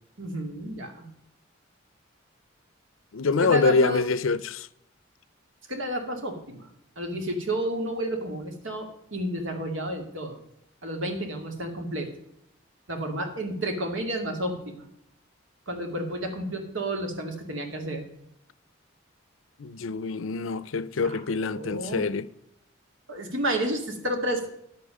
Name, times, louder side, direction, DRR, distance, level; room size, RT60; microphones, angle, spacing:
voice 1, 0.2-1.1 3.4-4.0 5.7-6.7 7.0-10.4 10.8-12.1 12.9-14.9 15.7-18.1 21.0-22.1 23.1-24.5, right 1 dB, 70° right, 2.5 m, -31 dB
voice 2, 3.1-4.7 13.1-13.2 19.6-22.3, left 4 dB, 75° left, 0.6 m, -25 dB
10.5 x 8.5 x 5.4 m
head